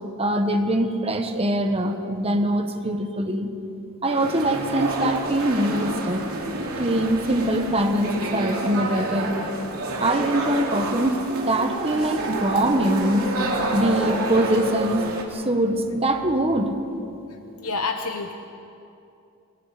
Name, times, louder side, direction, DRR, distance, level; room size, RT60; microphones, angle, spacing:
voice 1, 0.2-3.5 4.0-6.3 6.8-9.3 10.0-11.2 11.4-13.4 13.7-16.7, right 1 dB, 30° right, 5 dB, 1.5 m, -23 dB
sound 1, 4.0-15.2, right 2 dB, 80° right, 3.0 m, -29 dB
voice 2, 17.6-18.3, left 4 dB, 75° left, 5 dB, 1.1 m, -27 dB
27.0 x 22.5 x 5.1 m, 2.7 s
head